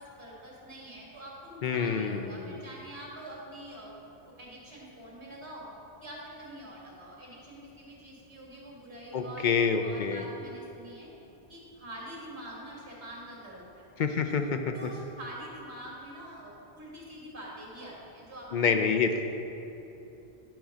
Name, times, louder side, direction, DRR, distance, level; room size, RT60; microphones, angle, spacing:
voice 1, 0.0-4.0 4.4-5.7 6.0-9.5 9.8-11.1 11.5-13.9 14.3-14.4 14.7-19.1, right 1 dB, 80° right, -5 dB, 2.3 m, -45 dB
voice 2, 1.6-2.5 9.1-10.2 14.0-14.4 18.5-19.2, left 6 dB, 55° left, 6 dB, 0.6 m, -27 dB
10.5 x 3.8 x 6.2 m, 2.9 s
omnidirectional pair, 1.1 m